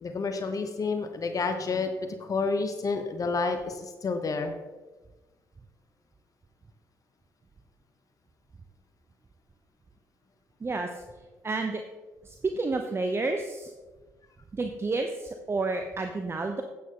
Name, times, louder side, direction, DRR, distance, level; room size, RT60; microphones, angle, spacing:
voice 1, 0.0-1.9 2.2-4.5, left 4 dB, 45° left, 7 dB, 1.0 m, -29 dB
voice 2, 10.6-11.0 11.4-11.8 12.2-13.7 14.5-16.6, right 3 dB, 30° right, 6 dB, 0.9 m, -30 dB
9.2 x 8.5 x 3.8 m, 1.2 s
supercardioid pair, 55°, 8 cm